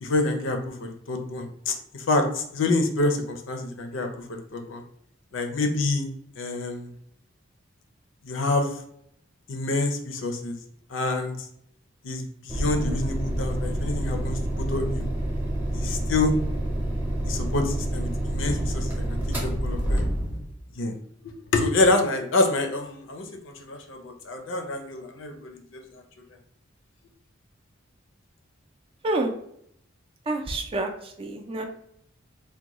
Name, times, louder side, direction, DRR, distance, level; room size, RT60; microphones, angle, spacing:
voice 1, 0.0-4.8 5.3-6.1 6.4-6.9 8.2-8.7 9.5-10.6 10.9-11.4 12.0-15.0 15.7-16.3 17.3-20.1 20.8-20.9 21.5-25.8, left 2 dB, 75° left, 5 dB, 0.5 m, -27 dB
sound 1, 12.5-20.5, right 1 dB, 10° right, 0.8 m, -28 dB
voice 2, 30.3-30.9 31.2-31.6, right 2 dB, 30° right, 4 dB, 0.4 m, -27 dB
3.5 x 2.2 x 2.9 m, 0.72 s
head